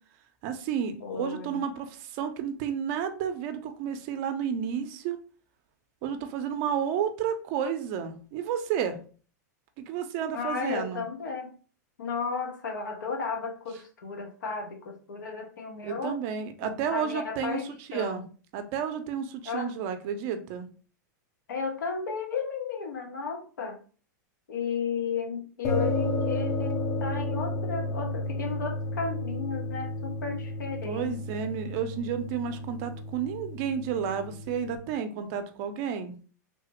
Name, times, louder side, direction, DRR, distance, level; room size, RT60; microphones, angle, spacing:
voice 1, 0.4-5.2 6.0-9.0 9.8-11.0 15.8-17.6 17.9-18.2 18.5-20.7 30.8-36.1, right 8 dB, 45° right, 8 dB, 0.5 m, -31 dB
voice 2, 1.0-1.6 10.3-11.5 12.0-16.2 16.6-18.2 19.4-19.7 21.5-23.8 24.5-31.2, left 5 dB, 85° left, 4 dB, 0.7 m, -34 dB
sound 1, 25.6-34.8, left 2 dB, 35° left, 0.5 m, -32 dB
3.2 x 2.0 x 2.9 m, 0.39 s
hypercardioid pair, 120°, 10 cm